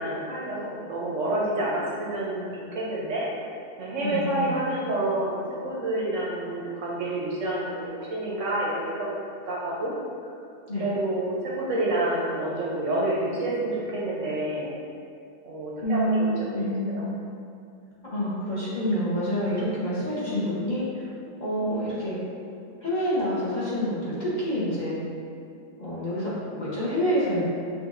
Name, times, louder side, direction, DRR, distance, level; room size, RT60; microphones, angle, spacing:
voice 1, 0.0-3.3 3.8-9.1 9.4-9.9 10.7-14.7 15.4-16.6 16.9-17.1, right 1 dB, 65° right, -5 dB, 0.8 m, -28 dB
voice 2, 4.0-4.6 10.7-10.8 15.8-17.0 18.0-21.1 21.4-22.2 22.8-25.0 25.8-27.4, equal, 35° left, -9 dB, 0.8 m, -27 dB
6.2 x 2.6 x 2.5 m, 2.5 s
omnidirectional pair, 1.8 m